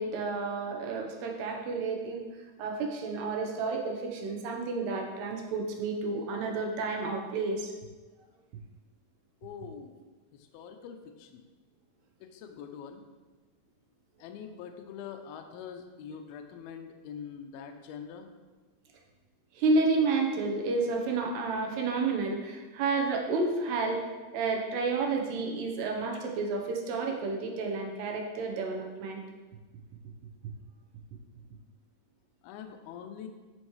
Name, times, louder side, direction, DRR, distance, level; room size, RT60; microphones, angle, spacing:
voice 1, 0.0-2.2 2.6-7.7 19.6-24.0 24.3-29.2, right 3 dB, 75° right, 1 dB, 2.9 m, -30 dB
voice 2, 9.4-10.0 10.3-11.5 12.2-13.0 14.2-18.3 32.4-33.3, left 7 dB, 80° left, 4 dB, 2.3 m, -44 dB
14.0 x 6.2 x 3.2 m, 1.3 s
omnidirectional pair, 5.0 m